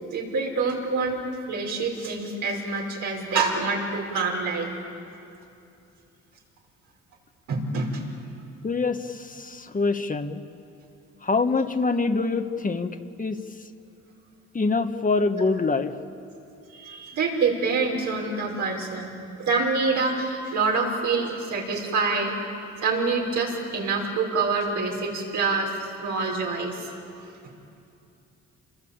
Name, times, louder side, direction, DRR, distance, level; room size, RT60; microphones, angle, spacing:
voice 1, 0.1-4.8 7.5-8.0 16.7-19.2 19.5-22.4 22.8-26.9 27.2-27.3, right 4 dB, 75° right, -1 dB, 5.7 m, -26 dB
voice 2, 8.6-10.4 11.2-13.4 14.5-15.9, left 3 dB, 25° left, 7 dB, 1.4 m, -25 dB
28.0 x 21.5 x 8.8 m, 2.7 s
cardioid pair, 90°, 30 cm